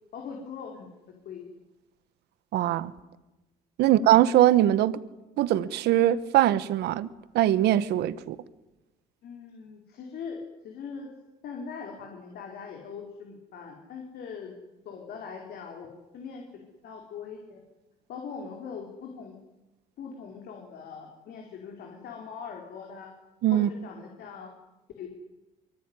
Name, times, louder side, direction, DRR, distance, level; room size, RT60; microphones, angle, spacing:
voice 1, 0.1-0.9 1.2-1.4 3.8-3.9 9.2-11.1 11.4-14.5 14.8-16.4 16.8-17.6 18.1-19.3 20.0-23.1 23.5-24.5 25.0-25.1, left 6 dB, 65° left, 4.7 m, -41 dB
voice 2, 2.5-2.9 3.8-5.0 5.4-7.1 7.3-8.3 23.4-23.7, right 13 dB, 80° right, 1.3 m, -21 dB
24.5 x 24.0 x 9.9 m
cardioid pair, 110°, 17 cm